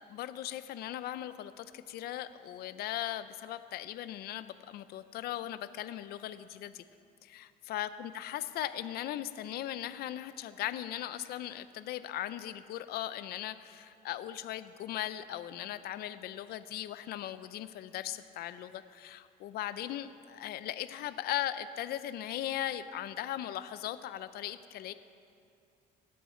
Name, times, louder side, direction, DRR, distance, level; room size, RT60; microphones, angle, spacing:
voice 1, 0.1-6.8 7.2-24.9, left 12 dB, 70° left, 13 dB, 0.5 m, -38 dB
17.0 x 13.0 x 4.4 m, 2.5 s
cardioid pair, 110°, 17 cm